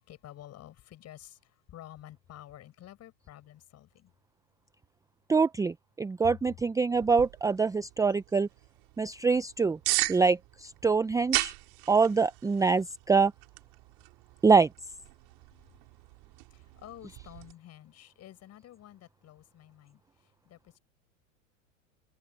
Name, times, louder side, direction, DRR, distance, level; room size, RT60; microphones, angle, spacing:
voice 1, 0.0-4.1 6.2-6.3 16.5-20.8, left 13 dB, 40° left, 7.8 m, -50 dB
voice 2, 5.3-8.5 9.0-9.8 10.1-11.5 11.9-13.3 14.4-14.7, right 4 dB, 10° right, 0.6 m, -25 dB
sound 1, 7.0-17.5, right 30 dB, 55° right, 5.4 m, -38 dB
hypercardioid pair, 105°, 40 cm